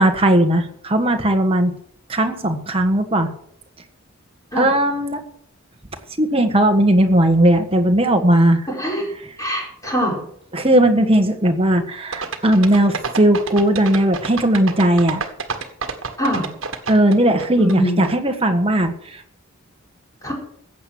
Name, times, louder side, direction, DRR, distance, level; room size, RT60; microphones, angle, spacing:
voice 1, 0.0-1.7 2.1-3.3 4.6-5.2 6.2-8.6 10.5-15.3 16.9-18.9, right 1 dB, 25° right, 6 dB, 1.5 m, -17 dB
voice 2, 8.7-9.1 9.4-10.2 16.2-16.5 17.6-18.0 20.2-20.3, equal, 15° left, -2 dB, 5.0 m, -22 dB
sound 1, 12.1-17.7 18.0-18.1, right 5 dB, 65° right, 1.6 m, -28 dB
15.0 x 8.7 x 6.5 m, 0.68 s
head